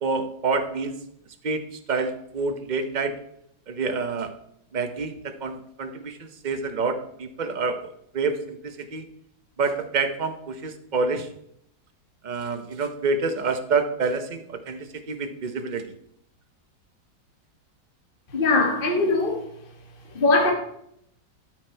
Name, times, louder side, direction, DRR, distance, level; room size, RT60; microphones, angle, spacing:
voice 1, 0.0-1.0 1.4-1.6 1.9-3.1 3.7-4.3 4.7-9.0 9.6-11.3 12.2-15.9, right 4 dB, 60° right, 0.4 m, -27 dB
voice 2, 18.3-19.4 20.1-20.5, left 3 dB, 30° left, 1.7 m, -21 dB
13.0 x 6.2 x 4.5 m
omnidirectional pair, 2.0 m